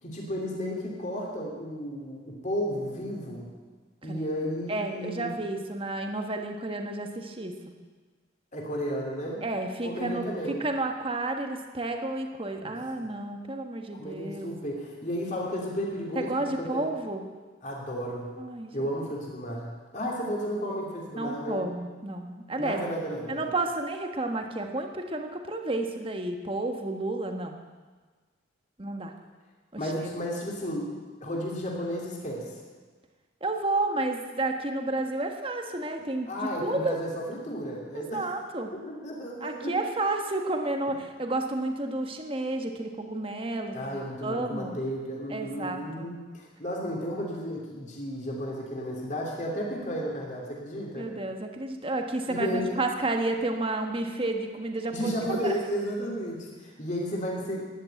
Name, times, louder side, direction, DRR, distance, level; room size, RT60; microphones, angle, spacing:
voice 1, 0.0-3.5 4.0-5.3 8.5-9.4 9.8-10.6 12.6-12.7 13.0-13.1 13.9-16.9 17.6-18.3 18.7-21.6 22.6-23.5 29.8-30.9 31.2-32.5 36.3-38.2 38.9-39.7 43.7-51.1 52.3-52.8 54.9-57.6, equal, 40° left, -2 dB, 3.2 m, -33 dB
voice 2, 4.7-7.6 9.4-14.5 16.1-17.2 18.4-18.9 21.1-22.8 23.3-27.6 28.8-29.1 29.7-29.9 33.4-37.0 37.9-38.7 39.4-44.8 45.3-46.1 51.0-55.6, right 2 dB, 30° right, 4 dB, 1.4 m, -31 dB
13.5 x 11.0 x 9.3 m, 1.4 s
head